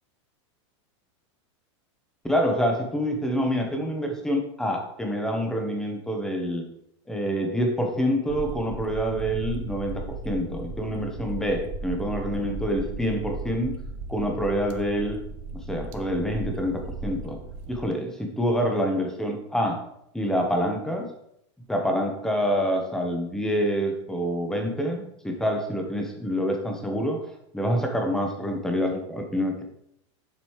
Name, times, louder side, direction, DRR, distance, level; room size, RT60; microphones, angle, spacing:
voice 1, 2.2-6.7 7.1-13.8 14.1-15.2 15.5-17.4 17.7-19.9 20.1-21.1 21.7-27.2 27.5-29.6, equal, 5° left, 3 dB, 1.1 m, -27 dB
sound 1, 8.3-17.8, right 3 dB, 45° right, 0.9 m, -36 dB
7.7 x 5.3 x 4.7 m, 0.74 s
supercardioid pair, 155°, 16 cm